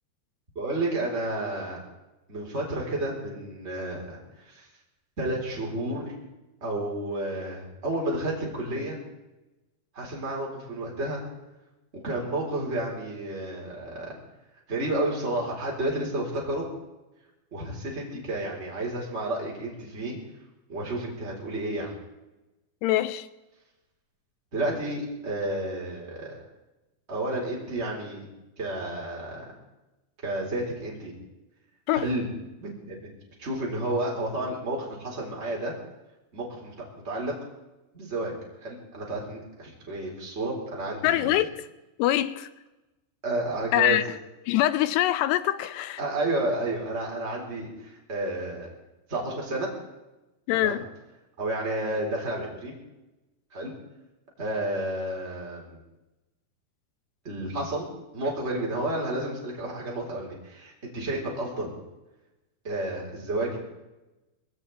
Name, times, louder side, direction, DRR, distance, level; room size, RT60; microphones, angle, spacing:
voice 1, 0.5-1.8 2.3-4.7 5.2-6.2 6.6-9.0 9.9-11.2 11.9-14.2 14.7-16.7 17.5-20.2 20.7-22.0 24.5-26.4 27.1-28.2 28.6-29.5 30.2-31.1 31.9-32.3 32.6-33.1 33.4-35.7 36.3-37.3 37.9-38.4 38.6-41.3 43.2-44.0 46.0-48.7 49.1-49.7 50.5-50.8 51.4-52.8 53.5-53.7 54.4-55.8 57.2-57.9 58.1-61.7 62.6-63.6, right 1 dB, 15° right, 3.9 m, -31 dB
voice 2, 22.8-23.3 31.9-32.1 41.0-41.7 42.0-42.5 43.7-44.0 44.5-46.0 50.5-50.9, left 14 dB, 85° left, 2.9 m, -24 dB
20.0 x 17.0 x 4.2 m
omnidirectional pair, 4.7 m